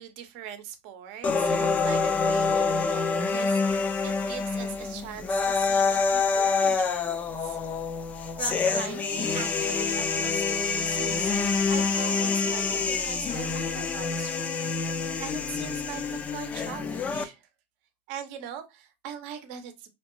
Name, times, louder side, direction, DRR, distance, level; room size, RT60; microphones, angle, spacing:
voice 1, 0.0-7.6 8.4-14.6 14.9-17.5 18.1-19.9, right 9 dB, 65° right, 0.7 m, -41 dB
sound 1, 1.2-17.2, left 4 dB, 25° left, 0.4 m, -27 dB
2.8 x 2.1 x 3.0 m
supercardioid pair, 130°, 6 cm